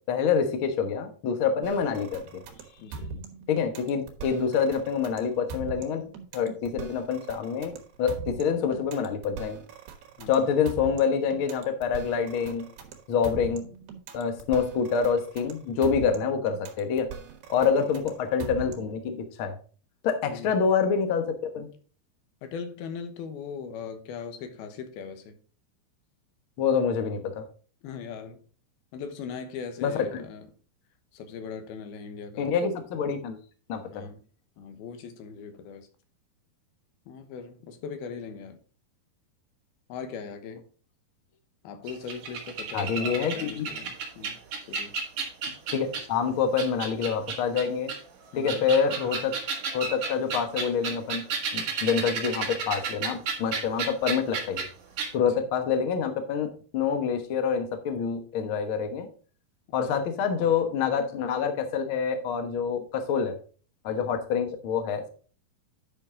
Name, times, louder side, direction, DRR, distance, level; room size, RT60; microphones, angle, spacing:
voice 1, 0.1-2.4 3.5-6.0 6.3-9.6 10.3-12.6 13.1-13.6 14.1-17.1 17.5-19.6 20.0-21.7 26.6-27.4 29.8-30.2 32.4-33.4 33.7-34.1 42.7-43.7 45.7-47.9 48.4-49.3 49.7-51.2 51.5-54.6 55.1-59.1 59.7-63.4 63.8-65.1, left 6 dB, 70° left, 1.2 m, -26 dB
sound 1, 1.6-19.0, right 4 dB, 85° right, 3.3 m, -41 dB
voice 2, 2.8-3.1 10.2-10.5 17.6-17.9 20.3-20.5 22.4-25.4 27.8-28.4 28.9-30.5 31.1-32.5 33.9-34.2 34.6-35.9 37.1-38.6 39.9-40.6 41.6-44.4 44.7-45.0 48.3-48.7 59.9-60.0, left 6 dB, 90° left, 3.0 m, -39 dB
sound 2, 41.9-46.2 46.6-48.0 48.4-54.7 55.0-55.1, right 5 dB, 60° right, 3.0 m, -32 dB
10.0 x 5.7 x 3.8 m
omnidirectional pair, 4.2 m